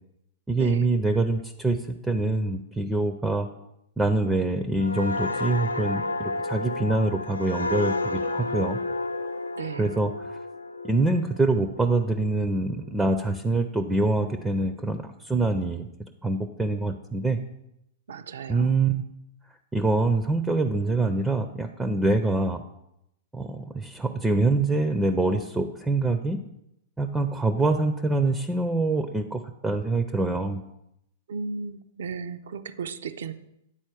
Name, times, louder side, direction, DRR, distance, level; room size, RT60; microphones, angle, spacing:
voice 1, 0.5-3.5 4.0-8.8 9.8-10.4 10.8-15.9 16.2-17.4 18.5-19.0 19.7-22.6 23.3-26.4 27.0-30.6, right 2 dB, 10° right, 8 dB, 0.4 m, -25 dB
sound 1, 4.8-12.2 12.6-12.9, left 2 dB, 80° left, 0.4 m, -31 dB
voice 2, 9.6-9.9 18.1-18.7 31.3-33.3, right 5 dB, 65° right, 11 dB, 0.4 m, -35 dB
8.9 x 4.2 x 4.7 m, 0.82 s
figure-of-eight pair, 100°, 0 cm